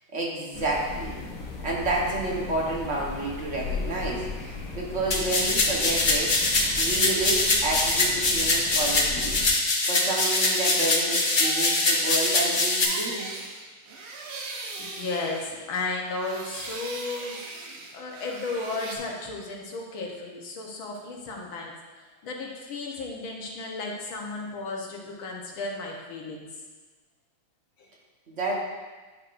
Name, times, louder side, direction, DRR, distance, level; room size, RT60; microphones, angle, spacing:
voice 1, 0.1-1.2 1.6-13.3 28.3-28.6, right 2 dB, 40° right, -2 dB, 1.4 m, -30 dB
sound 1, 0.5-9.5, left 4 dB, 60° left, 1.3 m, -37 dB
sound 2, 5.1-12.8, left 2 dB, 40° left, 0.7 m, -23 dB
sound 3, 9.8-15.8 16.1-19.0, right 3 dB, 90° right, 1.7 m, -39 dB
voice 2, 14.8-17.4 17.9-26.5 27.8-27.9, left 3 dB, 80° left, -1 dB, 1.9 m, -34 dB
10.5 x 6.1 x 2.5 m, 1.3 s
omnidirectional pair, 2.2 m